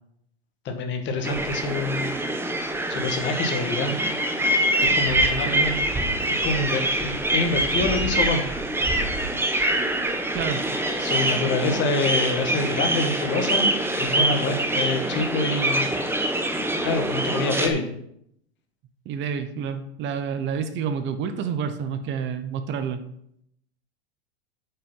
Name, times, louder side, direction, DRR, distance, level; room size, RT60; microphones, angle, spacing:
voice 1, 0.6-2.2 2.9-4.0 4.8-5.7 6.4-8.5 11.0-15.9 16.8-17.9, left 3 dB, 35° left, 5 dB, 1.7 m, -26 dB
sound 1, 1.2-17.7, right 1 dB, 5° right, 1.2 m, -24 dB
voice 2, 19.0-23.0, right 7 dB, 35° right, 10 dB, 1.0 m, -29 dB
8.5 x 5.8 x 5.6 m, 0.73 s
hypercardioid pair, 120°, 32 cm